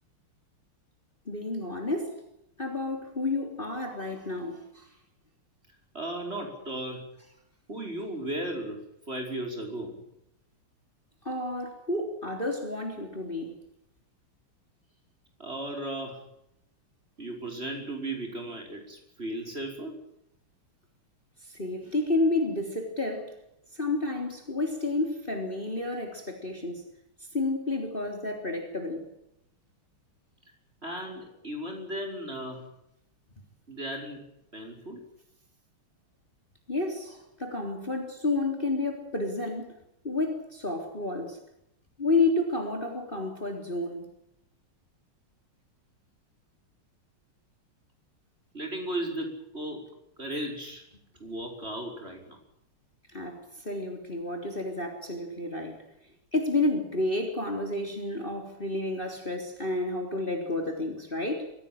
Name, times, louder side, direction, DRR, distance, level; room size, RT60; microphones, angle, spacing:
voice 1, 1.3-2.2 2.6-4.9 11.2-13.6 21.4-23.4 23.7-26.8 27.3-29.1 36.7-39.8 40.0-41.4 42.0-44.1 53.1-55.8 56.3-61.5, left 2 dB, 25° left, 3.8 m, -30 dB
voice 2, 5.9-7.0 7.7-9.9 15.4-16.2 17.2-20.0 30.8-32.7 33.7-34.2 34.5-35.1 48.5-49.9 50.2-50.8 51.2-52.4, right 1 dB, 25° right, 5.8 m, -36 dB
24.0 x 17.5 x 8.8 m
omnidirectional pair, 2.4 m